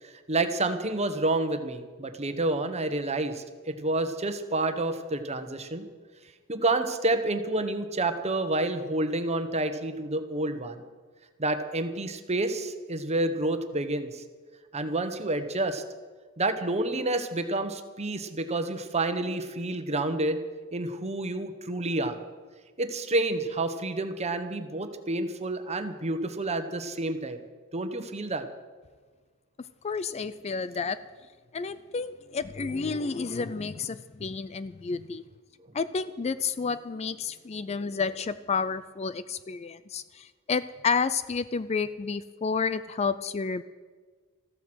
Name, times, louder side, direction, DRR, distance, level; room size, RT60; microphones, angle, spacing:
voice 1, 0.0-5.9 6.5-10.8 11.4-14.2 14.7-15.8 16.4-20.4 20.7-22.2 22.8-27.4 27.7-28.5, right 2 dB, 30° right, 9 dB, 1.2 m, -29 dB
voice 2, 29.8-31.0 31.5-35.2 35.7-43.6, left 5 dB, 30° left, 14 dB, 0.4 m, -30 dB
14.5 x 13.5 x 6.3 m, 1.4 s
head